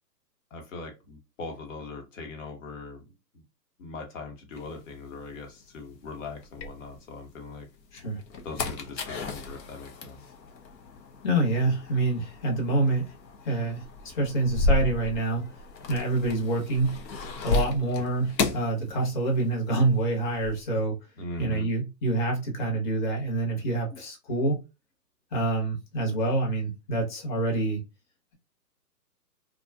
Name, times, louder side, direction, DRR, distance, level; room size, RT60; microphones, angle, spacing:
voice 1, 0.5-3.4 3.8-7.7 8.4-10.3 21.2-21.7, left 3 dB, 50° left, 1.0 m, -40 dB
sound 1, 4.6-7.3 7.8-19.6 19.8-20.6, left 2 dB, 80° left, 0.8 m, -33 dB
voice 2, 11.2-13.1 13.4-15.4 15.9-17.0 17.4-20.9 21.4-24.6 25.3-27.8, right 2 dB, 30° left, 0.8 m, -26 dB
2.7 x 2.3 x 2.2 m
hypercardioid pair, 140°, 49 cm